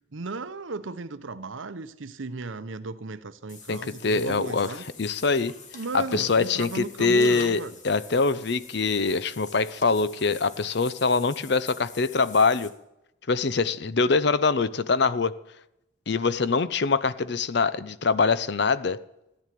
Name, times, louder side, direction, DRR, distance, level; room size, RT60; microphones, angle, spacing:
voice 1, 0.1-4.8 5.7-7.7, right 3 dB, 80° right, 0.8 m, -35 dB
Water / Bathtub (filling or washing), 3.5-12.7, left 5 dB, 40° left, 2.0 m, -46 dB
voice 2, 3.7-5.5 5.9-12.7 13.3-15.3 16.1-19.0, left 4 dB, 60° left, 0.7 m, -24 dB
14.5 x 10.5 x 7.6 m
head